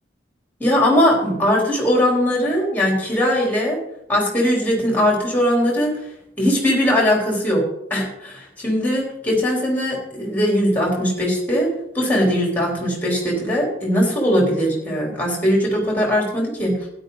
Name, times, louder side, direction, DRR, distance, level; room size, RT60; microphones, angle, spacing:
voice 1, 0.6-3.8 4.1-5.9 6.4-7.6 7.9-16.7, equal, 10° left, -1 dB, 3.9 m, -20 dB
12.5 x 10.5 x 4.1 m, 0.80 s
head